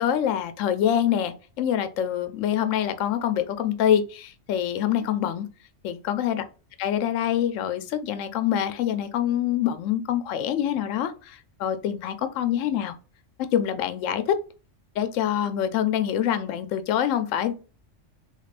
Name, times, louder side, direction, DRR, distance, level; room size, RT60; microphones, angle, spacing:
voice 1, 0.0-5.5 5.8-6.4 6.8-12.9 13.5-14.4 15.0-17.5, left 10 dB, 80° left, 0.9 m, -25 dB
3.5 x 3.3 x 2.4 m
omnidirectional pair, 1.3 m